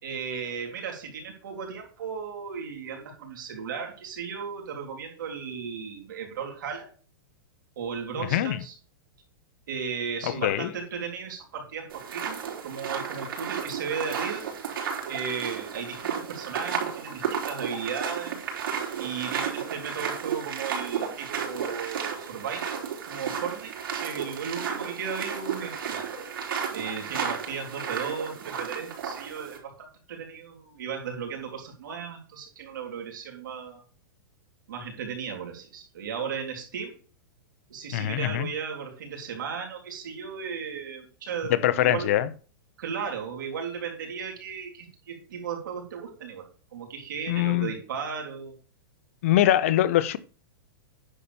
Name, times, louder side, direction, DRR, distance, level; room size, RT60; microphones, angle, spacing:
voice 1, 0.0-6.9 7.8-8.7 9.7-14.4 15.1-18.4 19.0-22.8 23.1-26.1 26.7-33.8 34.7-36.9 37.7-42.1 42.8-48.6, right 6 dB, 65° right, 3.6 m, -35 dB
voice 2, 8.3-8.6 10.2-10.7 37.9-38.5 41.5-42.3 47.3-47.7 49.2-50.2, left 13 dB, 40° left, 0.5 m, -23 dB
sound 1, 11.9-29.6, right 7 dB, 80° right, 3.7 m, -33 dB
9.8 x 4.1 x 6.9 m
supercardioid pair, 180°, 11 cm